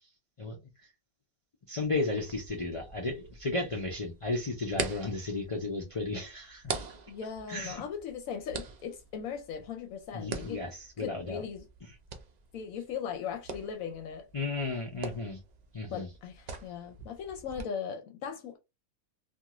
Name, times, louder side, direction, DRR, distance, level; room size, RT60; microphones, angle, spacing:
voice 1, 1.7-6.8 7.5-7.8 10.1-11.4 14.3-15.4 15.7-16.1, left 3 dB, 50° left, 0.4 m, -34 dB
sound 1, 2.1-17.6, right 5 dB, 75° right, 0.3 m, -44 dB
voice 2, 7.1-10.6 11.0-11.7 12.5-14.3 15.9-18.6, left 7 dB, 80° left, 1.0 m, -38 dB
2.5 x 2.4 x 2.9 m
omnidirectional pair, 1.4 m